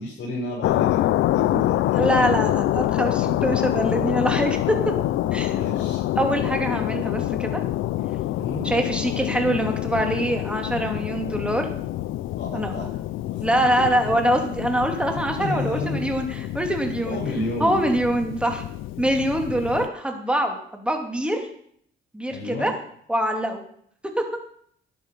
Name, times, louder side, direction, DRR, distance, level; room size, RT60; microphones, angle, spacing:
voice 1, 0.0-2.0 5.5-6.0 8.3-8.6 12.4-12.9 13.3-13.5 13.8-14.1 15.4-16.0 17.1-17.9 19.5-19.7 22.3-22.7, left 2 dB, 60° left, -6 dB, 7.1 m, -31 dB
sound 1, 0.6-19.9, left 14 dB, 85° left, 0.5 m, -26 dB
voice 2, 2.0-4.9 5.3-5.6 6.2-7.6 8.6-11.7 12.5-12.7 13.4-17.2 17.6-18.6 19.0-21.5 22.1-22.7 23.1-23.6, right 1 dB, 5° right, 3 dB, 2.9 m, -24 dB
13.5 x 10.5 x 5.6 m, 0.64 s
cardioid pair, 90°, 20 cm